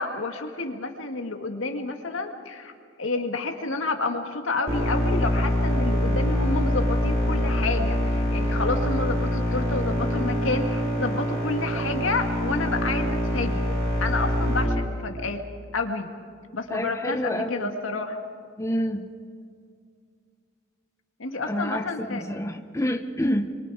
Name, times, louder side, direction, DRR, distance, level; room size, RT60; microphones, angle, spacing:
voice 1, 0.0-2.7 3.0-13.6 14.0-15.4 15.7-16.1 16.5-18.2 21.2-22.3, left 3 dB, 85° left, 4 dB, 2.2 m, -29 dB
sound 1, 4.7-14.7, equal, 30° right, 5.2 m, -25 dB
voice 2, 16.7-17.7 18.6-19.1 21.5-23.5, equal, 15° left, 5 dB, 0.8 m, -28 dB
26.5 x 24.0 x 5.0 m, 2.2 s
head